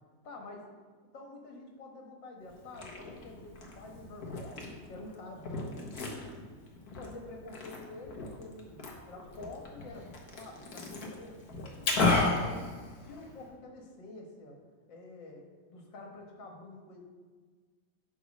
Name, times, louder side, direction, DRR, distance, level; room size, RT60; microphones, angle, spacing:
voice 1, 0.2-0.6 1.1-6.4 7.0-10.1 10.4-12.8 13.0-14.6 14.9-17.0, left 2 dB, 75° left, 1 dB, 2.2 m, -48 dB
Liquid, 2.5-13.5, left 3 dB, 55° left, 1.7 m, -35 dB
10.0 x 4.1 x 6.0 m, 1.5 s
omnidirectional pair, 2.0 m